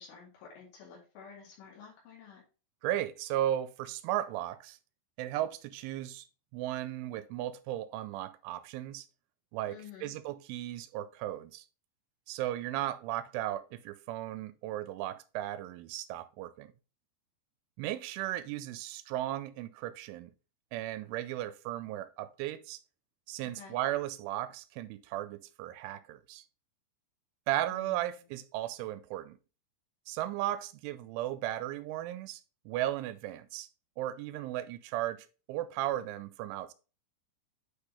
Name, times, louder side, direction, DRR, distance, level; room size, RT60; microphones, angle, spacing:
voice 1, 0.0-2.4 9.7-10.1 23.4-23.8 27.7-28.0, left 7 dB, 85° left, 4.7 m, -51 dB
voice 2, 2.8-4.8 5.2-6.2 6.5-9.1 9.5-11.6 12.3-16.7 17.8-20.3 20.7-22.8 23.3-26.4 27.5-29.4 30.1-33.7 34.0-36.7, right 13 dB, 90° right, 3.1 m, -36 dB
8.9 x 4.9 x 3.3 m
omnidirectional pair, 5.4 m